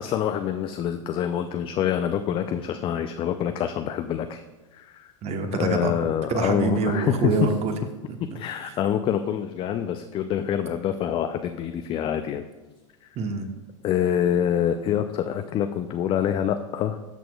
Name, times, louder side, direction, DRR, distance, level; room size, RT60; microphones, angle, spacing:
voice 1, 0.0-4.4 4.7-5.1 5.5-7.3 8.3-12.4 13.8-17.0, left 9 dB, 35° left, 8 dB, 0.4 m, -26 dB
voice 2, 5.2-5.9 6.3-7.7 8.1-8.2 8.6-8.8 13.1-13.5, right 4 dB, 40° right, 6 dB, 1.1 m, -26 dB
13.0 x 6.0 x 2.3 m, 1.2 s
hypercardioid pair, 95°, 17 cm